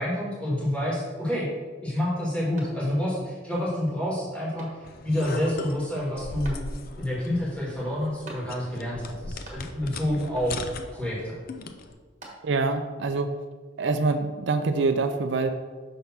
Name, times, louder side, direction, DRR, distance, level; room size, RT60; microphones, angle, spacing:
voice 1, 0.0-1.5 1.8-6.6 7.0-10.6 10.9-11.4, left 1 dB, 5° left, -7 dB, 1.7 m, -28 dB
sound 1, 2.5-3.2 3.7-3.8 4.5-5.2 6.4-7.1 8.2-8.9 9.1-9.9 10.3-10.8 11.8-12.8, right 1 dB, 35° right, 1.4 m, -47 dB
sound 2, 4.8-11.9, left 3 dB, 45° left, 0.4 m, -39 dB
voice 2, 12.4-13.3 13.8-15.5, right 3 dB, 60° right, 8 dB, 0.4 m, -25 dB
5.9 x 3.5 x 5.6 m, 1.5 s
head